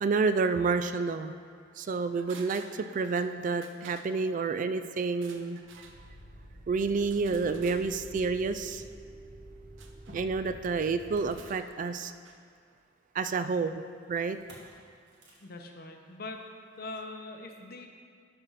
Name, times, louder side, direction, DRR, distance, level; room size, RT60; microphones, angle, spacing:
voice 1, 0.0-1.3 1.8-5.8 6.7-8.8 10.1-12.1 13.1-13.8 14.1-14.4, right 4 dB, 40° right, 10 dB, 0.3 m, -29 dB
sound 1, 2.3-3.3 3.6-4.1 5.1-6.0 7.1-7.8 9.8-10.2 11.2-12.4 12.7-12.8, right 5 dB, 80° right, 0.7 m, -52 dB
Motor vehicle (road), 5.6-12.0 14.3-14.7 15.1-15.4, equal, 60° right, 1.6 m, -50 dB
sound 2, 7.3-11.4, right 5 dB, 75° left, 1.1 m, -46 dB
voice 2, 15.4-16.4 16.8-17.9, left 2 dB, 50° left, 4 dB, 0.8 m, -42 dB
12.0 x 4.2 x 5.6 m, 2.2 s
head